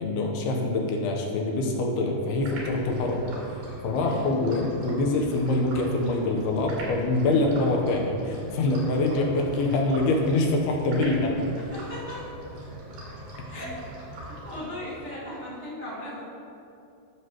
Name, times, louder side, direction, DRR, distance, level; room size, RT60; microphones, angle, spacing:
voice 1, 0.0-3.3 3.8-11.4 13.4-13.7, left 2 dB, 90° left, 1 dB, 3.0 m, -25 dB
sound 1, 2.4-15.1, right 1 dB, 85° right, 4.0 m, -41 dB
voice 2, 11.6-12.2 13.5-13.7 14.3-16.3, left 1 dB, 50° right, -10 dB, 0.8 m, -38 dB
14.0 x 6.5 x 3.0 m, 2.6 s
omnidirectional pair, 4.4 m